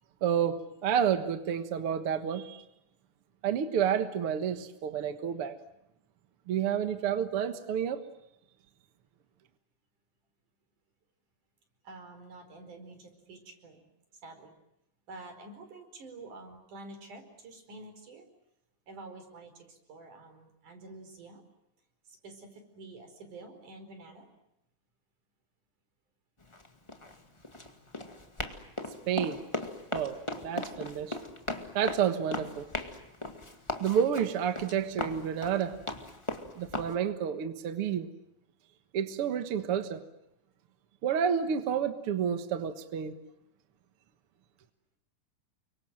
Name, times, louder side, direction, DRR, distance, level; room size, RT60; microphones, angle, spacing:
voice 1, 0.2-2.6 3.4-5.6 6.5-8.0 29.1-29.4 29.9-30.2 30.4-31.2 31.7-32.7 33.8-35.8 36.6-38.1 38.9-40.0 41.0-43.1, right 8 dB, 55° right, 9 dB, 2.0 m, -30 dB
voice 2, 11.8-13.9 14.1-14.5 15.1-18.3 18.9-21.4 22.1-24.3, right 2 dB, 75° right, 6 dB, 6.2 m, -48 dB
Run, 26.4-36.9, left 2 dB, 10° left, 1.5 m, -38 dB
30.0 x 25.0 x 7.6 m, 0.83 s
omnidirectional pair, 3.6 m